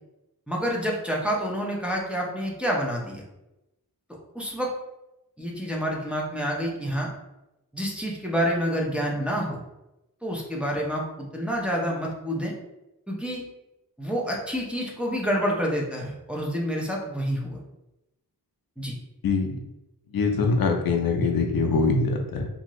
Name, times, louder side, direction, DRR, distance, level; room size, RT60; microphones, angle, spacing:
voice 1, 0.5-3.2 4.3-4.7 5.4-7.1 7.7-9.6 10.2-12.5 13.1-13.4 14.0-17.6 18.8-18.9, equal, 5° right, -2 dB, 0.6 m, -28 dB
voice 2, 19.2-19.6 20.1-22.5, left 4 dB, 70° left, 3 dB, 0.5 m, -23 dB
2.6 x 2.5 x 3.0 m, 0.94 s
wide cardioid pair, 85°, 37 cm